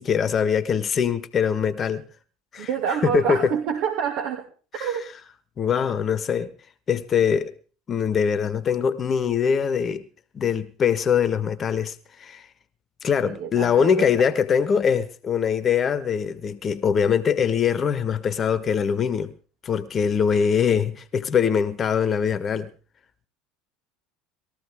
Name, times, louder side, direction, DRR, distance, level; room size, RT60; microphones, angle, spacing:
voice 1, 0.0-2.0 2.5-3.5 4.8-4.9 5.6-6.5 6.9-7.5 7.9-10.0 10.3-12.5 13.0-19.3 19.6-22.7, left 7 dB, 35° left, 1.3 m, -23 dB
voice 2, 2.6-4.5 4.8-5.1 13.2-14.1, right 8 dB, 60° right, 2.5 m, -27 dB
21.0 x 14.0 x 3.6 m
hypercardioid pair, 75°, 0 cm